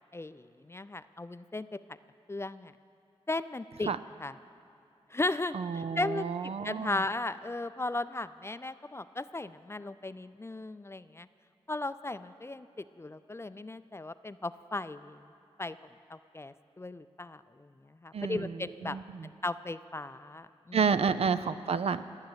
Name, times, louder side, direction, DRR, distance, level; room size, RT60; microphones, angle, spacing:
voice 1, 0.1-1.7 2.3-2.7 3.3-3.9 4.2-4.3 5.1-11.3 11.7-12.7 13.0-15.2 15.6-15.8 16.1-19.0 19.2-20.8, left 2 dB, 25° left, 14 dB, 0.4 m, -36 dB
voice 2, 5.5-7.0 18.1-19.3 20.7-22.0, right 6 dB, 65° right, 12 dB, 0.4 m, -30 dB
19.0 x 6.5 x 8.0 m, 2.6 s
cardioid pair, 45°, 11 cm